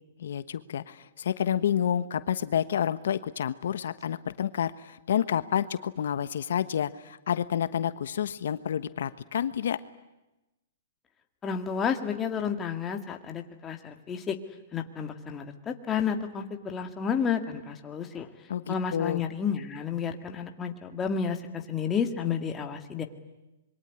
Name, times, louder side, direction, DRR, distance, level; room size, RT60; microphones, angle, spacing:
voice 1, 0.2-9.8 18.5-19.2, left 9 dB, 70° left, 13 dB, 1.2 m, -29 dB
voice 2, 11.4-14.4 14.7-18.3 18.7-23.0, left 7 dB, 15° left, 5 dB, 2.0 m, -31 dB
26.5 x 23.0 x 9.9 m, 0.99 s
hypercardioid pair, 165°, 0 cm